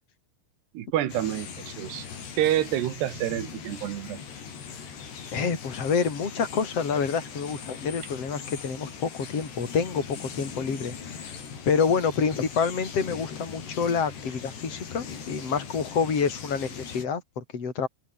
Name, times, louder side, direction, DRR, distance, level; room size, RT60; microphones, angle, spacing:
voice 1, 0.7-2.1 2.4-4.2, right 12 dB, 70° right, 3.7 m, -28 dB
sound 1, 1.1-17.1, left 6 dB, 65° left, 6.8 m, -40 dB
voice 2, 5.3-11.4 11.7-17.9, left 6 dB, 35° left, 5.2 m, -28 dB
omnidirectional pair, 5.2 m